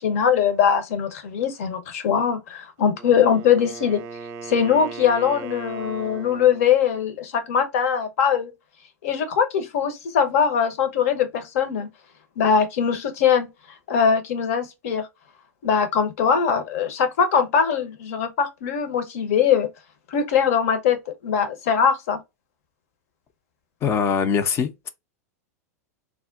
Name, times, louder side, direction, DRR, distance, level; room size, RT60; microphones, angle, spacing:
voice 1, 0.0-4.0 4.4-8.5 9.0-11.9 12.4-13.5 13.9-15.1 15.6-19.7 20.1-22.2, left 7 dB, 60° left, 0.8 m, -21 dB
Wind instrument woodwind instrument, 2.8-6.7, right 5 dB, 35° right, 0.6 m, -38 dB
voice 2, 23.8-24.9, left 6 dB, 30° left, 0.4 m, -22 dB
3.5 x 2.1 x 2.4 m
hypercardioid pair, 95°, 9 cm